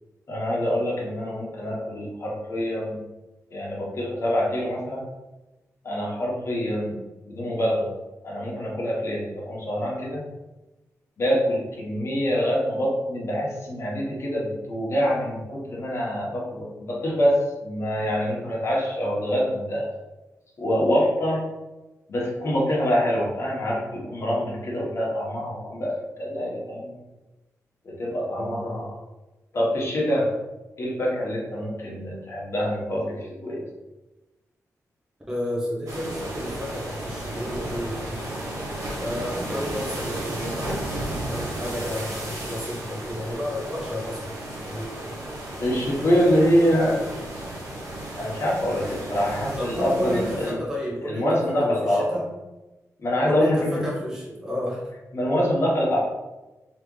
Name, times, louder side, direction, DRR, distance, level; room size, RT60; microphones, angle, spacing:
voice 1, 0.3-3.0 3.5-5.1 5.8-7.0 7.2-7.9 8.2-10.2 11.2-19.9 20.6-21.4 22.1-27.0 27.8-28.9 29.5-30.3 30.8-33.6 45.6-47.0 48.2-50.6 51.0-52.2 53.0-53.8 55.1-56.0, equal, 50° left, -4 dB, 1.2 m, -25 dB
voice 2, 28.3-28.9 35.3-38.3 39.0-40.9 41.3-45.0 49.6-52.4 53.2-54.9, equal, 10° right, -4 dB, 0.8 m, -31 dB
sound 1, 35.9-50.5, right 1 dB, 75° right, 1.0 m, -34 dB
3.6 x 3.2 x 3.2 m, 1.1 s
wide cardioid pair, 135°, 6 cm